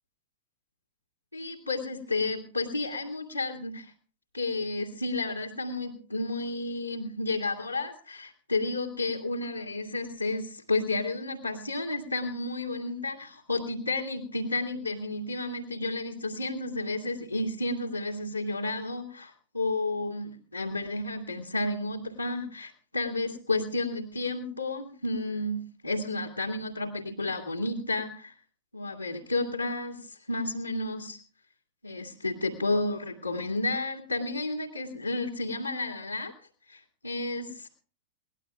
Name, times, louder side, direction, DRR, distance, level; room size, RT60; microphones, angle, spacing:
voice 1, 1.3-3.9 4.3-28.3 28.7-31.2 31.8-36.3 36.7-37.7, left 2 dB, 90° left, -4 dB, 2.3 m, -32 dB
23.0 x 18.5 x 2.3 m, 0.39 s
figure-of-eight pair, 90°, 0 cm